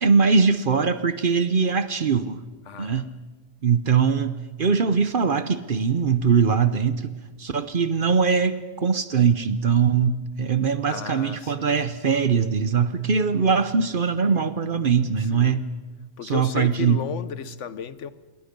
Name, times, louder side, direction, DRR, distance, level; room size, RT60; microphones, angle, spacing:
voice 1, 0.0-2.4 2.8-3.1 3.6-8.5 8.8-15.6 16.2-17.0, right 6 dB, 50° right, 1.0 m, -21 dB
voice 2, 2.7-3.1 10.8-11.8 15.2-15.6 16.2-18.1, left 8 dB, 80° left, 1.2 m, -34 dB
26.5 x 22.0 x 5.3 m
omnidirectional pair, 1.2 m